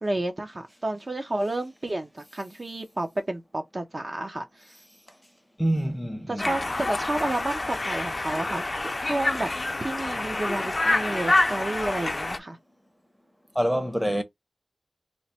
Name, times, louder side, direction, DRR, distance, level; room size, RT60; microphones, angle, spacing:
voice 1, 0.0-4.7 6.3-9.5 9.8-12.6, right 2 dB, 45° right, 0.6 m, -31 dB
voice 2, 5.6-6.5 13.5-14.2, right 1 dB, 5° right, 0.7 m, -26 dB
Conversation, 6.4-12.4, left 2 dB, 40° left, 0.4 m, -27 dB
3.1 x 2.0 x 4.2 m
wide cardioid pair, 80°, 0 cm